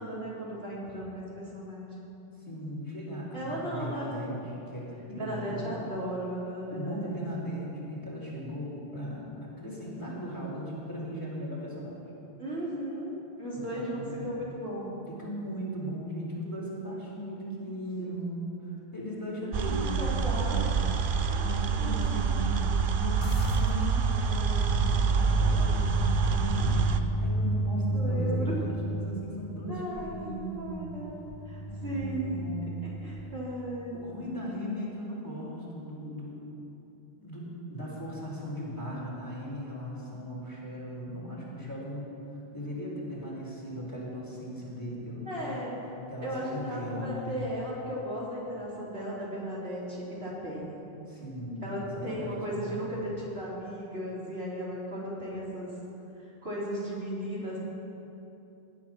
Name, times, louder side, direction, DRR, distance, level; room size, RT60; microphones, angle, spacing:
voice 1, 0.0-1.9 3.3-4.1 5.2-7.2 10.0-10.2 12.4-15.0 19.7-20.6 21.3-22.3 26.5-26.7 27.9-28.6 29.7-31.2 31.5-32.4 33.0-33.9 45.3-45.7 46.2-50.8 51.6-55.7 56.4-57.6, equal, 80° right, -6 dB, 3.7 m, -36 dB
voice 2, 2.4-5.8 6.7-12.0 13.5-14.3 15.1-20.8 21.1-30.9 31.7-32.9 33.9-36.4 37.2-42.0 42.5-45.7 46.1-47.3 51.1-52.8, equal, 20° left, -6 dB, 3.8 m, -38 dB
sound 1, 19.5-27.0, right 6 dB, 60° right, 0.8 m, -27 dB
sound 2, 23.2-33.8, equal, 35° left, 0.7 m, -33 dB
17.0 x 10.5 x 6.0 m, 2.9 s
omnidirectional pair, 1.0 m